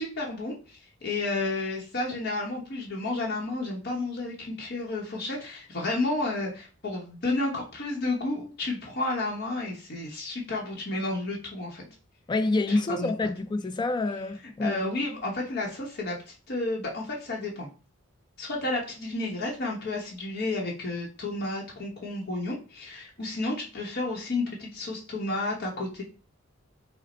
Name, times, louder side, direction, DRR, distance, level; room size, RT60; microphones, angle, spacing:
voice 1, 0.0-11.8 12.7-13.1 14.6-17.7 18.4-26.0, left 2 dB, 55° left, 0.9 m, -31 dB
voice 2, 12.3-14.9, left 2 dB, 20° left, 0.3 m, -27 dB
5.0 x 2.1 x 4.2 m
head